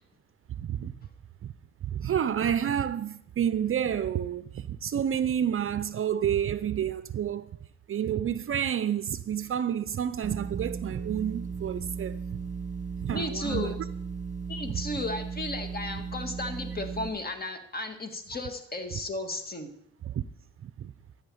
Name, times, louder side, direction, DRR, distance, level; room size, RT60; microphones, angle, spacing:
voice 1, 0.6-0.9 1.4-1.5 1.8-7.5 7.9-12.4 13.0-13.7 20.0-20.2 20.6-20.9, right 9 dB, 45° right, 0.6 m, -29 dB
sound 1, 10.2-17.1, right 6 dB, 25° right, 2.0 m, -36 dB
voice 2, 13.1-13.8 14.5-19.7, left 2 dB, 30° left, 1.9 m, -34 dB
13.5 x 5.7 x 8.6 m
cardioid pair, 90°, 30 cm